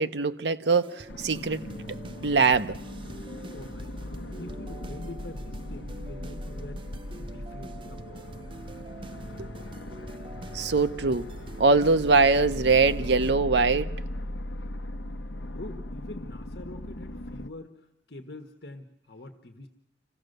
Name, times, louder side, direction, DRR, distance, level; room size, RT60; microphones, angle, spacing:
voice 1, 0.0-1.6 2.2-2.8 9.4-9.5 10.5-11.3 11.6-13.9, right 4 dB, 75° right, 0.8 m, -22 dB
sound 1, 0.7-13.3, right 2 dB, 30° right, 0.8 m, -45 dB
sound 2, 1.1-17.5, left 1 dB, 90° left, 0.9 m, -38 dB
voice 2, 3.1-6.9 7.2-8.4 15.4-19.7, left 2 dB, 65° left, 1.4 m, -45 dB
26.5 x 15.5 x 6.6 m
head